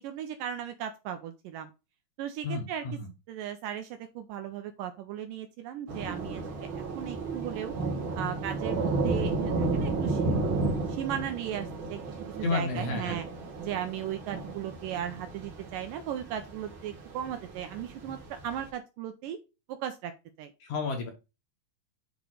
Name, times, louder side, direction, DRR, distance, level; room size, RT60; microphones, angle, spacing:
voice 1, 0.0-1.7 2.2-2.8 3.3-7.7 8.2-13.3 13.6-19.4 19.7-20.1 20.4-20.5, right 10 dB, 85° right, 7 dB, 2.0 m, -37 dB
voice 2, 2.4-3.1 12.4-13.2 20.6-21.1, left 4 dB, 60° left, 3 dB, 2.3 m, -31 dB
Thunder / Rain, 5.9-18.7, right 3 dB, 55° right, 1.4 m, -33 dB
7.9 x 4.9 x 3.8 m, 0.28 s
omnidirectional pair, 4.4 m